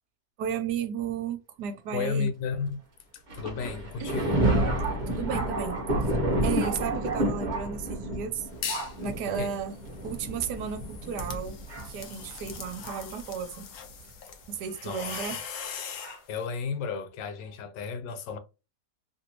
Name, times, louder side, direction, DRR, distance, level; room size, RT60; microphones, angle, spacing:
voice 1, 0.4-2.3 4.0-4.1 5.1-6.2 6.4-8.5 9.0-9.7 10.0-11.6 11.9-13.7 14.5-15.4, right 7 dB, 75° right, 1.1 m, -34 dB
voice 2, 1.9-2.8 3.1-4.4 9.3-9.5 14.8-15.1 16.3-18.4, left 5 dB, 90° left, 1.4 m, -33 dB
Thunder, 3.3-13.2 14.0-14.1 15.1-15.3 16.0-16.2, right 1 dB, 45° right, 0.6 m, -30 dB
sound 1, 8.5-9.0 9.4-16.2, left 7 dB, 70° left, 1.2 m, -40 dB
3.2 x 2.6 x 2.8 m
omnidirectional pair, 1.9 m